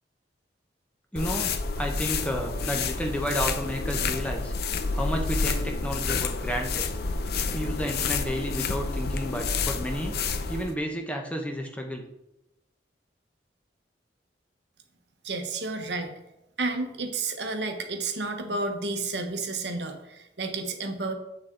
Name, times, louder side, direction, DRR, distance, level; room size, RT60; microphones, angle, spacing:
voice 1, 1.1-1.5 1.8-4.5 4.9-6.9 7.5-10.2 10.5-12.0, equal, 10° left, 2 dB, 0.9 m, -31 dB
sound 1, 1.2-10.7, left 4 dB, 60° left, 0.6 m, -29 dB
voice 2, 15.2-16.2 16.6-21.1, right 3 dB, 75° right, 5 dB, 1.1 m, -31 dB
8.1 x 6.5 x 3.8 m, 0.87 s
head